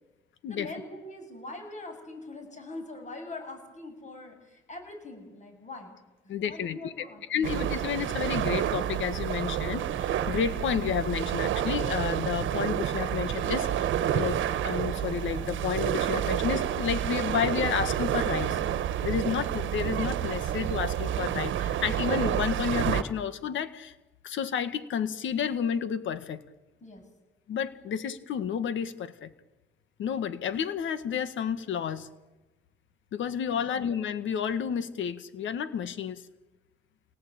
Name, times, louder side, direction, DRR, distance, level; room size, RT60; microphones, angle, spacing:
voice 1, 0.5-6.0 6.4-7.2 18.3-18.6 26.8-27.0 33.5-33.8, left 2 dB, 35° left, 5 dB, 7.9 m, -42 dB
voice 2, 6.3-6.9 7.3-18.5 19.0-23.9 24.2-26.4 27.5-29.3 30.0-32.1 33.1-36.2, left 7 dB, 75° left, 12 dB, 1.7 m, -31 dB
sound 1, 7.4-23.0, right 10 dB, 75° right, 1.4 m, -29 dB
27.5 x 18.5 x 8.9 m, 1.1 s
cardioid pair, 90°, 20 cm